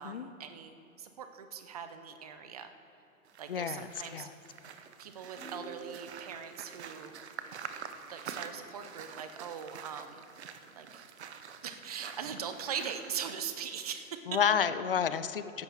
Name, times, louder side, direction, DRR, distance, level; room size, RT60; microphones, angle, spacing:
voice 1, 0.0-2.7 3.4-4.3 5.0-7.1 8.1-10.3 10.8-11.1 11.6-14.2, right 7 dB, 25° right, 8 dB, 0.6 m, -41 dB
sound 1, 3.2-13.3, right 7 dB, 50° right, 0.9 m, -47 dB
voice 2, 3.5-4.3 14.3-15.6, left 7 dB, 40° left, 13 dB, 0.5 m, -30 dB
sound 2, 5.4-6.4, right 2 dB, 5° left, 1.2 m, -46 dB
15.5 x 10.5 x 4.5 m, 2.7 s
hypercardioid pair, 140°, 43 cm